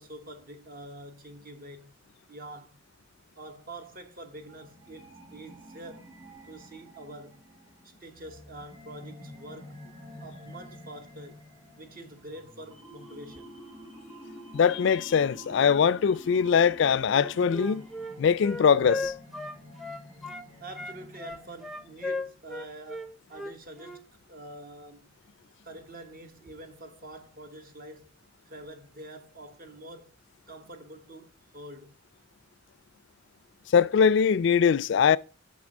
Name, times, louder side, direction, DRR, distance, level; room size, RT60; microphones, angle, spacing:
voice 1, 0.0-1.9 2.3-2.8 3.4-6.1 6.4-7.4 7.8-9.8 10.2-11.5 11.8-13.6 20.6-25.1 25.6-28.1 28.5-30.1 30.5-31.9, right 1 dB, 50° right, 1.2 m, -46 dB
sound 1, 4.4-22.4, equal, 30° right, 3.1 m, -49 dB
voice 2, 14.5-17.9 18.2-19.1 33.7-35.2, left 7 dB, 65° left, 0.4 m, -22 dB
Wind instrument woodwind instrument, 17.1-20.5 20.7-24.0, left 2 dB, ahead, 0.5 m, -36 dB
6.6 x 6.0 x 5.3 m
head